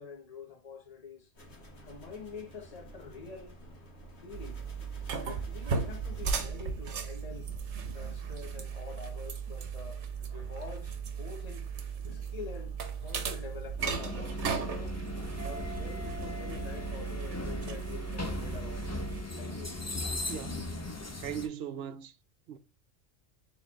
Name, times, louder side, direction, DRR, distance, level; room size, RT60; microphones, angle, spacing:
voice 1, 0.0-1.3 1.8-3.5 4.0-4.6 5.2-7.5 7.9-11.7 12.0-15.0 15.4-19.1 19.4-19.7, left 5 dB, 35° left, 1.2 m, -46 dB
sound 1, 1.3-6.4, right 1 dB, 75° left, 1.8 m, -51 dB
sound 2, 4.3-19.2, right 6 dB, 90° right, 1.1 m, -36 dB
Elevator to subway (metro) station in Vienna Austria, 13.8-21.5, left 2 dB, 20° left, 0.5 m, -38 dB
voice 2, 20.3-20.7 21.2-22.2 22.5-22.6, right 9 dB, 70° right, 0.8 m, -39 dB
4.3 x 3.7 x 3.1 m
omnidirectional pair, 1.2 m